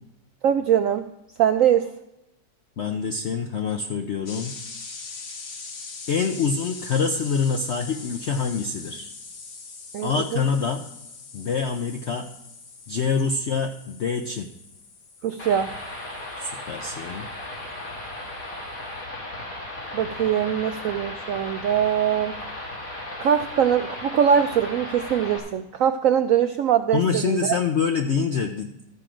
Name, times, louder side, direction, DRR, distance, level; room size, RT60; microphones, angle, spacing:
voice 1, 0.4-1.1 1.4-1.9 9.9-10.4 15.2-15.7 19.9-22.3 23.2-27.5, right 9 dB, 75° right, 8 dB, 0.7 m, -22 dB
voice 2, 2.8-4.5 6.1-9.1 10.0-10.8 11.3-12.3 12.9-14.5 16.4-17.3 26.9-28.7, left 5 dB, 70° left, 5 dB, 0.6 m, -25 dB
sound 1, 4.3-17.9, left 4 dB, 90° left, 2.1 m, -42 dB
sound 2, 15.4-25.4, left 1 dB, 50° left, 2.8 m, -36 dB
13.0 x 7.5 x 5.0 m, 0.91 s
omnidirectional pair, 1.9 m